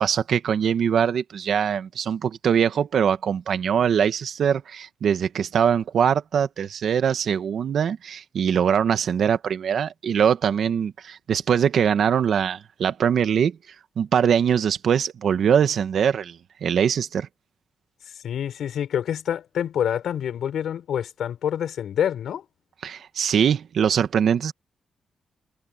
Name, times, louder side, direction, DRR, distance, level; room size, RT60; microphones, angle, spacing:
voice 1, 0.0-13.6 14.0-17.3 22.8-24.5, right 8 dB, 65° right, 1.5 m, -22 dB
voice 2, 18.1-22.4, left 9 dB, 75° left, 6.3 m, -27 dB
cardioid pair, 120°, 0 cm